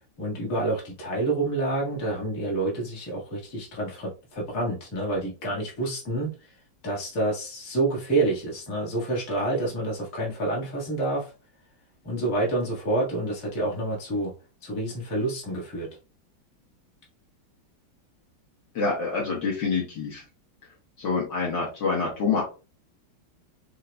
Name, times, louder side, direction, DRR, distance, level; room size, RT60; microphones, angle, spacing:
voice 1, 0.2-6.3 6.8-11.3 12.0-14.3 14.6-15.9, right 2 dB, 45° left, -3 dB, 2.0 m, -28 dB
voice 2, 18.8-20.2 21.0-22.4, left 4 dB, 65° left, -3 dB, 1.9 m, -26 dB
6.5 x 2.6 x 2.2 m, 0.32 s
omnidirectional pair, 2.2 m